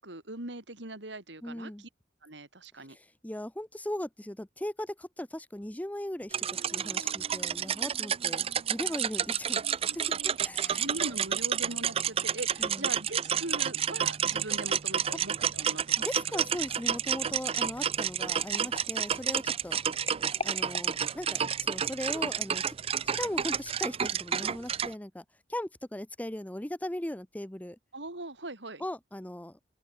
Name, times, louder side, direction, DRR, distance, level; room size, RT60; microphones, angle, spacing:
voice 1, 0.0-1.9 2.2-3.0 6.8-7.1 9.6-16.1 27.9-28.8, right 2 dB, 70° right, 4.0 m, -41 dB
voice 2, 1.4-1.8 2.9-10.9 12.6-12.9 16.0-19.8 20.4-22.6 23.0-27.8 28.8-29.6, left 1 dB, 10° left, 0.8 m, -38 dB
sound 1, 6.3-24.9, right 8 dB, 35° right, 0.4 m, -30 dB
sound 2, 17.2-22.2 22.8-23.1 23.3-23.4, left 4 dB, 35° left, 3.4 m, -45 dB
open air
head